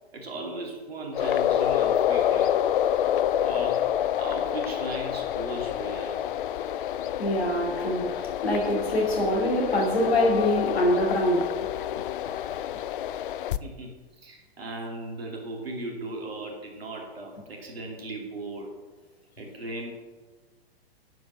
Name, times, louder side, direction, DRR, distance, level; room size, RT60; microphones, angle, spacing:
voice 1, 0.1-2.5 3.0-3.1 3.4-3.9 4.1-6.2 13.6-18.7 19.4-19.9, right 2 dB, 70° right, 2.8 m, -37 dB
sound 1, 1.1-13.6, left 10 dB, 55° left, 0.5 m, -27 dB
voice 2, 7.2-11.5, left 1 dB, 75° left, 2.7 m, -24 dB
9.2 x 5.3 x 7.1 m
figure-of-eight pair, 105°, 31 cm